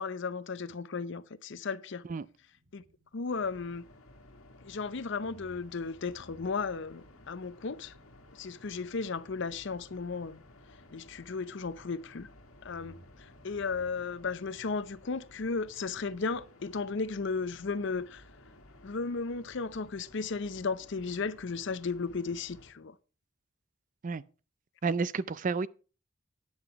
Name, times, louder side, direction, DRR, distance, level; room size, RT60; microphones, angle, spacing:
voice 1, 0.0-2.0 2.7-2.8 3.1-3.8 4.6-7.9 8.3-10.4 10.9-12.3 12.6-18.2 18.8-23.0, left 4 dB, 60° left, 0.6 m, -35 dB
sound 1, 2.3-4.8 5.2-12.2 12.6-15.4, right 1 dB, 90° right, 2.2 m, -62 dB
sound 2, 3.3-22.7, left 1 dB, 85° left, 1.6 m, -56 dB
voice 2, 24.8-25.7, right 4 dB, 40° right, 0.4 m, -30 dB
9.6 x 7.9 x 4.6 m
head